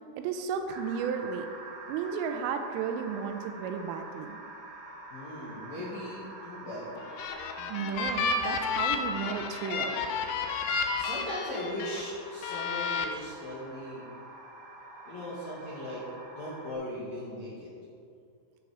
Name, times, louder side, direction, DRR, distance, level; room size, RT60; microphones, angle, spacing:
voice 1, 0.2-1.5 1.9-4.4 7.7-10.0, right 7 dB, 80° right, 7 dB, 3.1 m, -33 dB
sound 1, 0.7-16.7, right 1 dB, 60° right, 2.4 m, -46 dB
voice 2, 5.1-7.1 11.0-14.1 15.0-16.0 16.3-17.7, left 1 dB, 55° left, -8 dB, 2.0 m, -38 dB
sound 2, 7.0-12.0 12.4-13.1, left 4 dB, 75° left, 2.9 m, -31 dB
10.5 x 9.0 x 5.0 m, 2.4 s
omnidirectional pair, 5.9 m